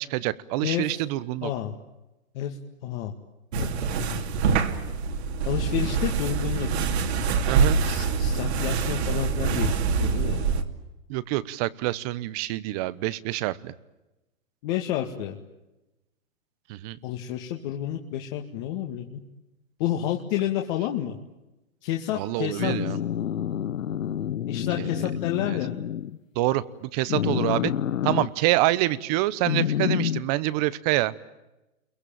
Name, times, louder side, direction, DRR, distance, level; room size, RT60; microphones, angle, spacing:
voice 1, 0.0-1.5 7.5-7.8 11.1-13.7 16.7-17.0 22.1-23.0 24.8-25.1 25.4-25.6 26.3-27.7 28.0-31.1, right 17 dB, 30° right, 19 dB, 0.9 m, -26 dB
voice 2, 0.6-0.9 1.4-1.7 2.3-2.6 2.8-3.1 3.5-3.7 3.9-4.2 5.4-6.7 7.8-10.4 14.6-15.4 17.0-19.2 19.8-21.2 21.8-22.8 24.5-25.7, left 11 dB, 35° left, 2 dB, 2.1 m, -30 dB
sound 1, 3.5-10.6, right 5 dB, 50° right, 2.8 m, -25 dB
sound 2, 22.6-26.2 27.1-28.3 29.4-30.2, left 10 dB, 75° left, 1.2 m, -28 dB
29.5 x 22.5 x 8.9 m, 1.0 s
hypercardioid pair, 145°, 40 cm